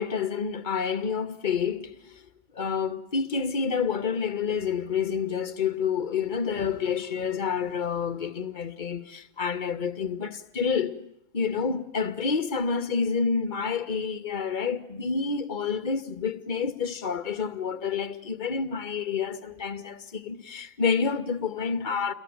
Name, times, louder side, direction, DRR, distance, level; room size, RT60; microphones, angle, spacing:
voice 1, 0.0-2.2 2.5-11.0 11.3-22.1, left 6 dB, 50° left, 2.2 m, -28 dB
29.0 x 22.5 x 9.2 m
figure-of-eight pair, 90°, 0 cm